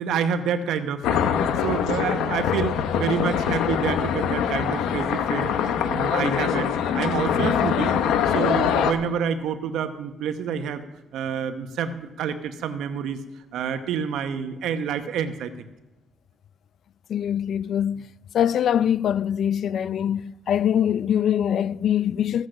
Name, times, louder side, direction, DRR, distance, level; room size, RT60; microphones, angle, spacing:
voice 1, 0.0-5.5 5.9-7.9 8.3-10.8 11.1-13.2 13.5-15.5, right 7 dB, 85° right, 1.0 m, -28 dB
sound 1, 1.0-8.9, left 8 dB, 90° left, 0.8 m, -23 dB
voice 2, 17.1-18.1 18.3-22.5, left 9 dB, 65° left, 0.3 m, -23 dB
14.0 x 8.0 x 6.5 m
cardioid pair, 90°, 0 cm